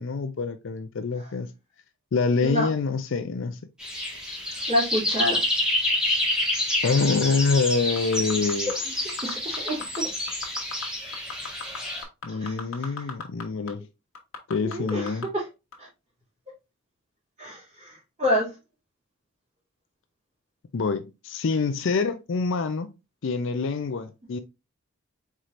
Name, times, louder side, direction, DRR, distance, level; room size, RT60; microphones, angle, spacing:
voice 1, 0.0-1.5 2.1-3.6 6.8-8.7 12.2-13.9 14.5-15.3 20.7-22.9 23.2-24.4, left 4 dB, 65° left, 0.5 m, -26 dB
sound 1, 3.8-12.0, left 1 dB, 5° right, 1.5 m, -28 dB
voice 2, 4.7-5.4 8.7-8.8 9.2-10.1 12.3-12.9 14.6-15.4 15.8-15.9 17.4-18.5, equal, 35° right, 2.4 m, -28 dB
sound 2, 8.0-8.7 9.1-10.0 10.3-10.9 11.1-13.4 13.7-13.8 14.1-15.3 15.7-15.8, left 5 dB, 85° left, 1.2 m, -36 dB
4.8 x 4.2 x 2.5 m
head